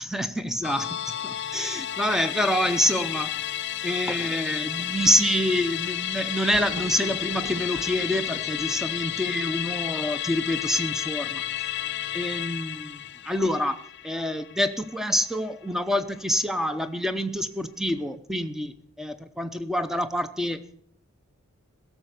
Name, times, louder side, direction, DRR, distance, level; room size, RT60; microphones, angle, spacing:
voice 1, 0.0-3.3 3.8-11.4 12.1-20.8, equal, ahead, 11 dB, 0.6 m, -27 dB
Musical instrument, 0.6-15.3 15.6-15.7, left 12 dB, 55° left, 0.5 m, -32 dB
Thunder, 4.9-10.7, right 1 dB, 65° right, 3.2 m, -46 dB
16.5 x 6.8 x 6.5 m, 0.65 s
head